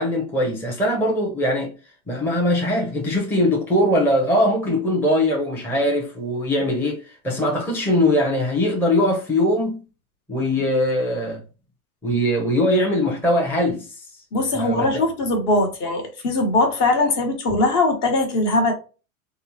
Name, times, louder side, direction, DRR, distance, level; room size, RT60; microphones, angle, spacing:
voice 1, 0.0-1.8 2.1-9.8 10.3-11.4 12.0-14.0 14.5-14.9, left 1 dB, 5° left, 0.6 m, -21 dB
voice 2, 14.3-18.7, left 2 dB, 45° left, 1.2 m, -20 dB
3.6 x 2.0 x 2.7 m
hypercardioid pair, 110°, 43 cm